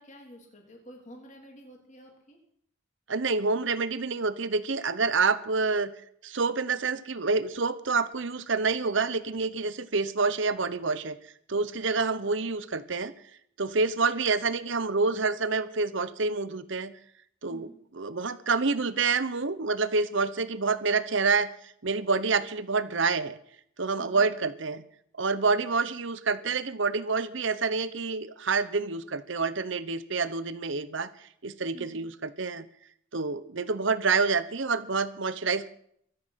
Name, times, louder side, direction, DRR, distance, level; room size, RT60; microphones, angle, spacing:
voice 1, 0.0-2.4 17.5-17.8 24.0-24.3 31.7-32.1, equal, 35° left, 1 dB, 3.3 m, -49 dB
voice 2, 3.1-5.9 6.2-11.2 11.5-13.1 13.6-16.9 17.4-17.7 17.9-23.4 23.8-24.8 25.2-31.1 31.4-32.7 33.1-35.7, right 4 dB, 65° right, 14 dB, 1.0 m, -27 dB
23.5 x 8.7 x 5.8 m, 0.69 s
head